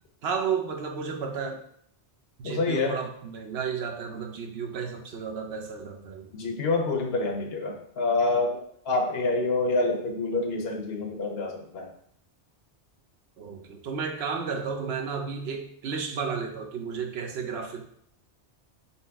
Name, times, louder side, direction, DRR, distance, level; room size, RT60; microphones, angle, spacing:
voice 1, 0.2-1.7 2.4-6.3 13.4-17.9, right 6 dB, 70° right, 4 dB, 0.8 m, -32 dB
voice 2, 2.4-3.0 6.3-11.9, left 3 dB, 65° left, 3 dB, 0.9 m, -27 dB
4.0 x 3.0 x 3.4 m, 0.65 s
omnidirectional pair, 1.2 m